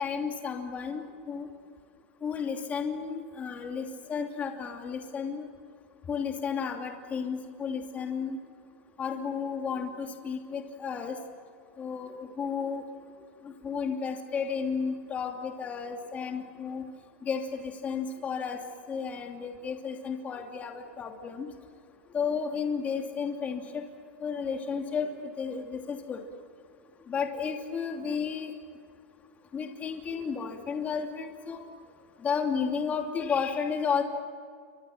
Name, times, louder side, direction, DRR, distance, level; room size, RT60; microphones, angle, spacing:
voice 1, 0.0-1.5 2.2-5.5 6.1-8.4 9.0-11.2 11.8-12.8 13.4-16.8 17.2-18.6 18.9-21.5 22.1-23.8 24.2-25.1 25.4-26.2 27.1-28.5 29.5-31.6 32.2-34.0, left 6 dB, 20° left, 3 dB, 2.9 m, -32 dB
29.0 x 25.0 x 7.4 m, 2.2 s
supercardioid pair, 135°, 7 cm